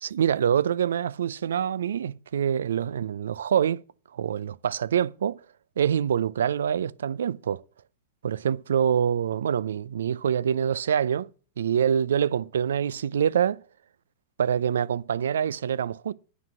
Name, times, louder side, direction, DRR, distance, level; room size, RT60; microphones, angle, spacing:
voice 1, 0.0-3.8 4.1-5.4 5.8-7.6 8.2-11.3 11.6-13.6 14.4-16.1, right 8 dB, 75° right, 0.4 m, -25 dB
9.7 x 6.1 x 5.8 m
hypercardioid pair, 100°, 0 cm